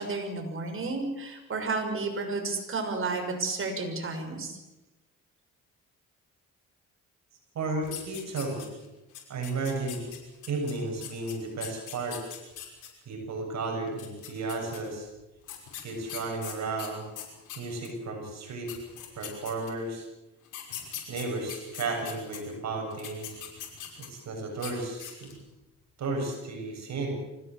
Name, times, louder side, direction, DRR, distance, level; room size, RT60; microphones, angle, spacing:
voice 1, 0.0-4.6, right 3 dB, 45° right, 4 dB, 6.3 m, -32 dB
voice 2, 7.6-8.7 9.3-10.0 10.5-12.2 13.1-15.1 15.8-17.0 17.6-18.7 19.2-20.1 21.1-23.3 24.1-25.3 26.0-27.2, right 3 dB, 60° right, 2 dB, 7.1 m, -33 dB
sound 1, 7.8-8.9 9.1-12.9 13.9-14.8 15.5-17.9 18.4-18.5 18.7-19.9 20.5-22.4 22.9-24.2 24.5-24.7 25.0-25.4, left 10 dB, 85° left, 6.0 m, -41 dB
25.0 x 17.0 x 7.7 m, 1.0 s
cardioid pair, 90°, 30 cm